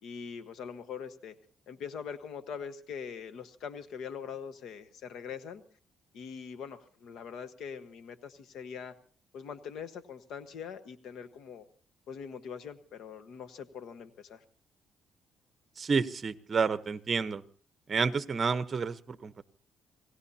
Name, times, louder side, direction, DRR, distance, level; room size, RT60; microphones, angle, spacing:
voice 1, 0.0-1.3 1.7-5.6 6.1-8.9 9.3-11.6 12.1-14.4, left 7 dB, 75° left, 11 dB, 1.3 m, -42 dB
voice 2, 15.8-17.4 17.9-19.4, right 5 dB, 40° right, 13 dB, 0.9 m, -30 dB
27.5 x 17.5 x 2.8 m, 0.43 s
cardioid pair, 90°, 0 cm